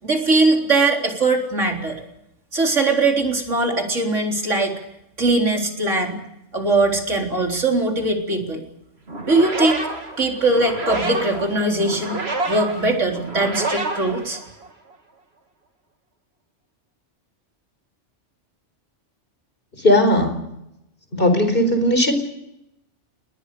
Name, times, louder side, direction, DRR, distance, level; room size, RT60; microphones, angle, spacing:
voice 1, 0.0-2.0 2.5-4.7 5.2-6.2 6.5-8.6 9.3-9.9 10.2-14.4, right 2 dB, 85° right, 2 dB, 4.3 m, -20 dB
sound 1, 9.1-14.9, right 2 dB, 60° right, 2.9 m, -28 dB
voice 2, 19.8-20.4 21.1-22.1, left 1 dB, 45° left, 8 dB, 4.7 m, -17 dB
29.5 x 20.0 x 6.8 m, 0.85 s
omnidirectional pair, 1.2 m